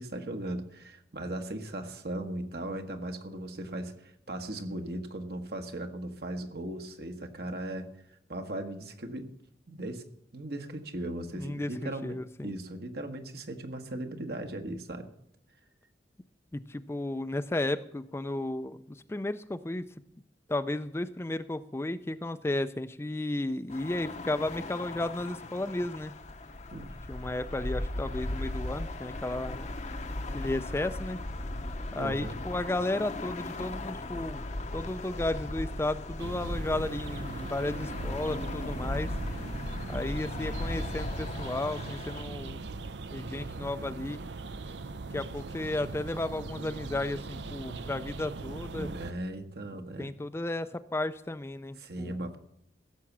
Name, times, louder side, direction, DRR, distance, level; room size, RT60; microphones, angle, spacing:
voice 1, 0.0-7.9 8.3-9.3 9.7-10.0 10.3-12.2 12.4-15.1 26.7-27.0 32.0-32.4 39.6-39.8 48.7-50.1 51.8-52.4, right 1 dB, 60° right, 6 dB, 1.3 m, -38 dB
voice 2, 11.3-12.5 16.5-19.9 20.5-26.1 27.1-29.7 30.3-31.2 31.9-39.1 39.9-42.6 43.1-44.2 45.1-48.9 50.0-52.2, left 2 dB, 15° left, 11 dB, 0.4 m, -33 dB
sound 1, 23.7-42.2, left 2 dB, 40° left, 0.8 m, -37 dB
sound 2, 36.2-49.1, right 3 dB, 90° right, 0.6 m, -40 dB
16.0 x 7.0 x 7.3 m, 0.76 s
head